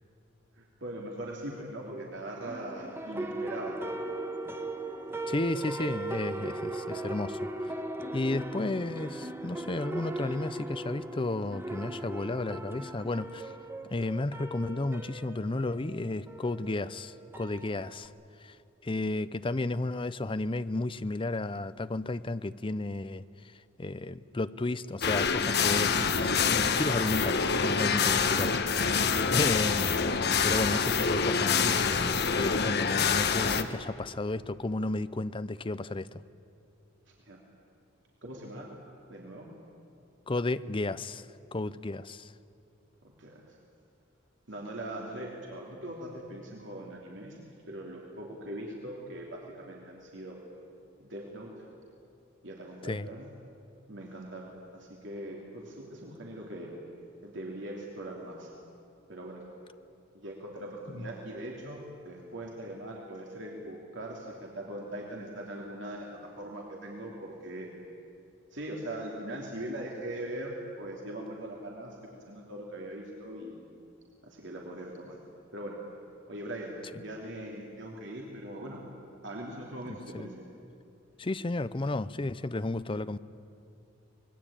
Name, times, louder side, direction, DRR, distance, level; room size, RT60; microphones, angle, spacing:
voice 1, 0.5-3.8 4.5-4.6 37.1-37.4 38.2-38.7 39.1-39.5 43.2-43.6 44.5-47.4 47.7-50.4 51.0-51.5 52.4-53.3 53.9-56.7 57.2-58.5 59.1-59.4 60.1-66.1 66.4-67.7 68.5-72.0 72.2-73.5 74.2-75.2 75.5-75.8 76.3-78.8 79.2-80.5, right 1 dB, 65° right, -1 dB, 3.1 m, -41 dB
sound 1, 2.5-18.1, right 2 dB, 10° right, 1.2 m, -38 dB
voice 2, 5.3-7.5 8.1-13.5 13.8-18.1 18.4-18.6 18.8-30.0 30.4-36.2 40.3-41.3 41.5-42.3 52.8-53.1 60.9-61.1 80.1-80.3 81.2-83.2, left 2 dB, 25° left, 14 dB, 0.6 m, -33 dB
sound 2, 25.0-33.6, left 5 dB, 55° left, 1.2 m, -26 dB
25.5 x 21.0 x 8.9 m, 2.6 s
head